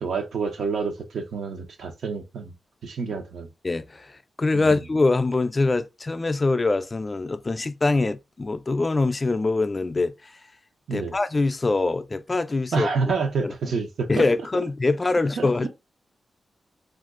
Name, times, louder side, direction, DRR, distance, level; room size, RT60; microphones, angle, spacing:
voice 1, 0.0-2.5 2.8-3.5 4.5-4.7 10.9-11.1 12.7-14.2 15.4-15.7, right 5 dB, 80° right, 0.7 m, -28 dB
voice 2, 3.6-10.4 10.9-12.9 13.4-13.7 14.1-15.7, left 3 dB, 35° left, 0.3 m, -24 dB
2.5 x 2.3 x 3.6 m
cardioid pair, 65°, 0 cm